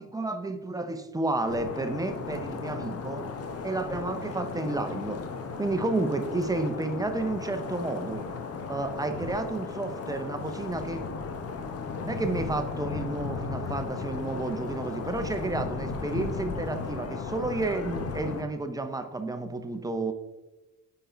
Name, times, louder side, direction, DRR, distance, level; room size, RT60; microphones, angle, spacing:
voice 1, 0.0-3.3 3.6-5.2 5.6-8.2 8.7-11.0 12.0-20.1, right 2 dB, 10° right, 7 dB, 0.6 m, -31 dB
sound 1, 1.5-18.4, left 5 dB, 55° left, 0.8 m, -35 dB
5.2 x 4.5 x 4.4 m, 1.1 s
cardioid pair, 90°, 30 cm